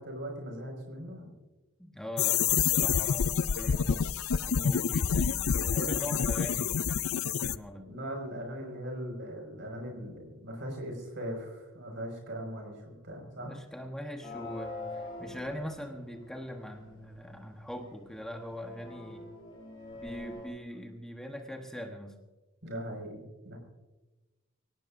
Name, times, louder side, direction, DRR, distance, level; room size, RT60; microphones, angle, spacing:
voice 1, 0.0-1.3 4.5-5.0 5.6-6.2 7.8-13.5 22.6-23.6, equal, 55° right, 2 dB, 5.9 m, -40 dB
voice 2, 1.8-6.8 7.2-7.9 13.4-19.3 19.9-22.2, equal, ahead, 2 dB, 1.2 m, -42 dB
sound 1, 2.2-7.6, left 7 dB, 70° left, 0.5 m, -28 dB
sound 2, 14.2-17.2 17.6-17.7 18.2-20.5, left 2 dB, 20° left, 5.8 m, -44 dB
24.5 x 18.0 x 2.7 m, 1.1 s
head